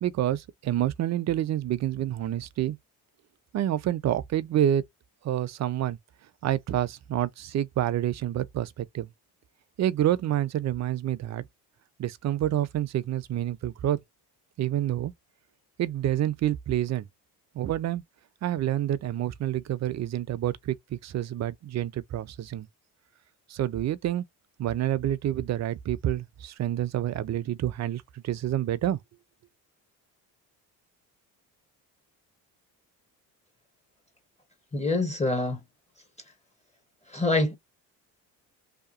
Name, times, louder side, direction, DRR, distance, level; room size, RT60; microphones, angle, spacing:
voice 1, 0.0-2.8 3.5-4.8 5.2-6.0 6.4-9.1 9.8-11.4 12.0-14.0 14.6-15.1 15.8-17.1 17.5-18.0 18.4-22.7 23.5-24.3 24.6-29.0, right 12 dB, 45° right, 0.5 m, -28 dB
voice 2, 34.7-35.6 37.1-37.6, left 2 dB, 15° left, 0.9 m, -25 dB
2.8 x 2.2 x 2.5 m
supercardioid pair, 80°, 40 cm